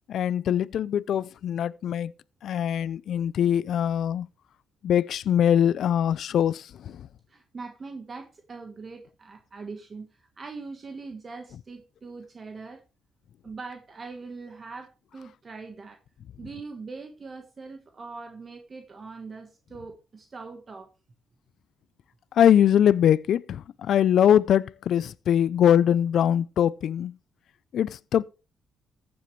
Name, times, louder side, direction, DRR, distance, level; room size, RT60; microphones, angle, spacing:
voice 1, 0.1-2.1 2.4-4.3 4.8-6.6 22.4-27.1 27.7-28.2, left 9 dB, 70° left, 0.4 m, -22 dB
voice 2, 7.3-12.8 13.4-16.0 16.4-20.9, right 4 dB, 35° right, 1.3 m, -42 dB
14.5 x 7.9 x 3.2 m
cardioid pair, 90°, 0 cm